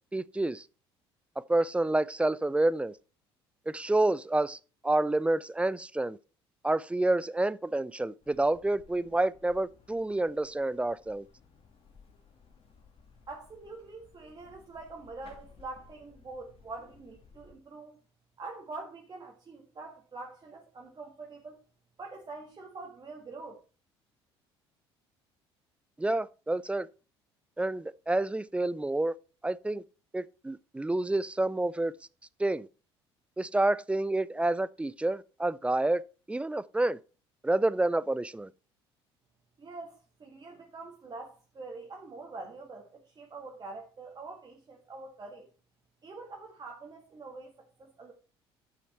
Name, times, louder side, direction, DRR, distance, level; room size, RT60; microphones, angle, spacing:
voice 1, 0.1-0.6 1.4-2.9 3.7-6.2 6.6-11.3 26.0-26.9 27.6-29.1 29.4-29.8 30.1-31.9 32.4-32.7 33.4-36.0 36.3-37.0 37.4-38.5, right 2 dB, 10° right, 0.4 m, -28 dB
sound 1, 8.2-17.6, left 5 dB, 45° left, 2.1 m, -58 dB
voice 2, 13.3-18.0 18.4-21.5 22.0-23.6 39.6-45.5 46.0-47.5 47.8-48.1, right 3 dB, 30° right, 1.7 m, -45 dB
8.4 x 6.4 x 4.3 m
figure-of-eight pair, 55°, 13 cm